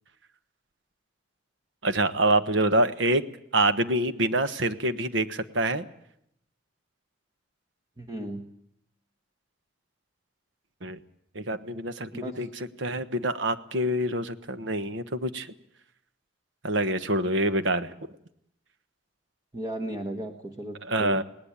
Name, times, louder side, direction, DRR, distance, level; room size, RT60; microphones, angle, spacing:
voice 1, 1.8-3.2 3.5-5.8 10.8-11.0 11.3-12.5 12.8-15.5 16.6-17.9 20.9-21.2, right 1 dB, 80° right, 10 dB, 1.3 m, -26 dB
voice 2, 8.0-8.5 12.1-12.5 19.5-21.2, right 1 dB, 20° right, 4 dB, 1.3 m, -35 dB
20.0 x 18.5 x 8.8 m, 0.75 s
head